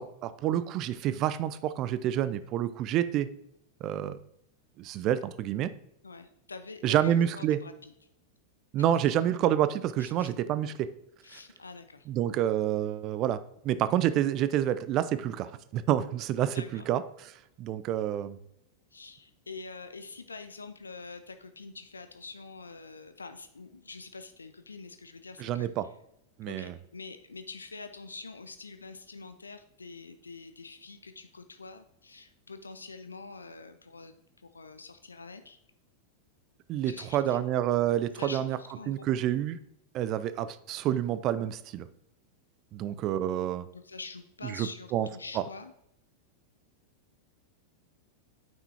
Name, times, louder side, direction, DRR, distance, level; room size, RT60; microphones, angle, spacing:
voice 1, 0.0-3.3 3.8-4.2 4.8-5.7 6.8-7.6 8.7-10.9 12.1-13.4 13.6-17.3 17.6-18.4 25.4-25.9 26.4-26.7 36.7-38.6 38.9-39.6 39.9-41.9 42.7-43.7 44.4-45.1 45.3-45.4, right 11 dB, 35° right, 15 dB, 0.4 m, -28 dB
voice 2, 6.0-7.9 9.1-9.2 10.0-10.3 11.2-12.1 16.4-16.9 18.9-25.7 26.5-34.1 34.4-35.6 36.9-37.5 38.2-39.1 43.7-45.7, left 4 dB, 75° left, 9 dB, 0.4 m, -45 dB
8.8 x 5.9 x 2.8 m, 0.78 s
figure-of-eight pair, 90°, 0 cm